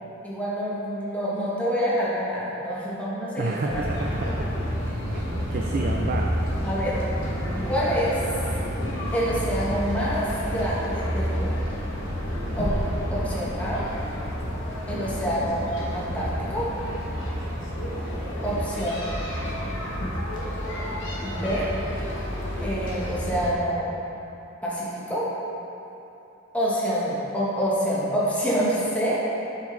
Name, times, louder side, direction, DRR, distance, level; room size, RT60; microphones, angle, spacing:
voice 1, 0.2-3.8 6.6-7.0 7.6-8.2 9.1-11.6 12.5-12.7 13.1-13.9 14.9-15.7 15.9-16.7 18.4-19.1 21.2-21.6 22.6-23.9 24.6-25.3 26.5-29.2, equal, 5° left, -8 dB, 1.3 m, -27 dB
voice 2, 3.4-4.5 5.1-5.2 5.5-6.3, right 2 dB, 45° right, 0 dB, 0.4 m, -29 dB
sound 1, 3.7-23.5, equal, 65° left, 1.4 m, -29 dB
7.5 x 7.1 x 3.3 m, 3.0 s
head